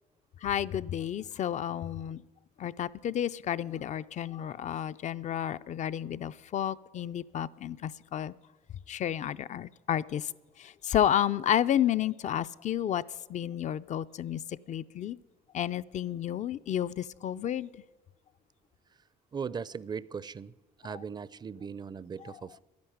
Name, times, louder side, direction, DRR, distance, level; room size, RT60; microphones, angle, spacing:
voice 1, 0.4-2.2 2.6-8.3 8.9-10.3 10.6-13.0 13.3-14.4 14.7-15.2 15.5-17.7, left 10 dB, 45° left, 0.4 m, -31 dB
voice 2, 19.3-20.5 20.8-22.6, right 6 dB, 25° right, 0.5 m, -38 dB
11.5 x 10.5 x 10.0 m
cardioid pair, 110°, 17 cm